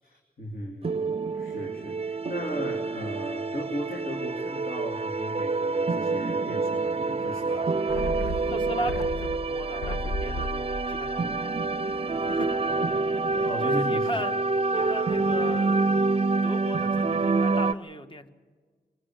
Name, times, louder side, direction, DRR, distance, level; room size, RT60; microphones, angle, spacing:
voice 1, 0.0-8.5 12.6-14.2, equal, 65° left, 1 dB, 2.6 m, -37 dB
sound 1, 0.8-17.7, right 3 dB, 40° right, 0.6 m, -27 dB
sound 2, 7.9-12.5 12.7-12.8, left 1 dB, 85° left, 0.9 m, -35 dB
voice 2, 8.5-11.5 12.2-12.5 13.6-14.4 14.7-16.1 16.4-18.3, equal, 30° left, 7 dB, 1.6 m, -37 dB
24.0 x 15.0 x 9.2 m, 1.5 s
cardioid pair, 50°, 16 cm